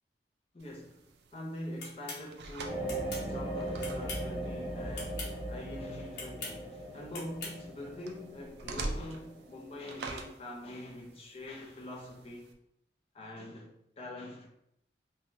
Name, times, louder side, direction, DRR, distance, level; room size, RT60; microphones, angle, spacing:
voice 1, 0.5-12.6 13.1-14.5, left 1 dB, 35° left, 0.5 m, -44 dB
sound 1, 0.6-12.5, right 2 dB, 70° right, 0.4 m, -46 dB
sound 2, 1.8-2.2 2.9-3.3 3.8-4.3 4.9-5.3 6.1-6.6 7.1-7.6, left 3 dB, 75° left, 0.9 m, -41 dB
sound 3, 2.7-10.1, right 1 dB, 35° right, 0.7 m, -39 dB
3.2 x 2.2 x 2.6 m
head